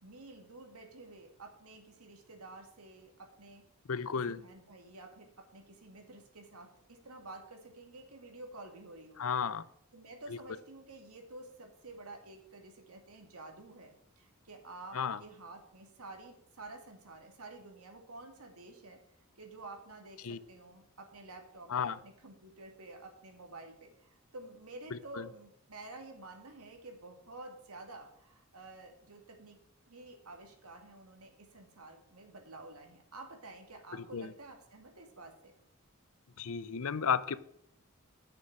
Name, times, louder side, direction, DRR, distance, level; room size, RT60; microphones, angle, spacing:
voice 1, 0.0-3.6 4.3-9.3 9.9-19.0 19.4-29.6 29.9-35.5, right 2 dB, 80° right, 4 dB, 2.3 m, -50 dB
voice 2, 3.9-4.4 9.2-9.6 10.3-10.4 14.9-15.2 20.2-20.4 21.7-22.0 24.9-25.3 33.9-34.3 36.4-37.4, left 6 dB, 70° left, 16 dB, 0.6 m, -33 dB
9.6 x 6.9 x 6.1 m, 0.75 s
head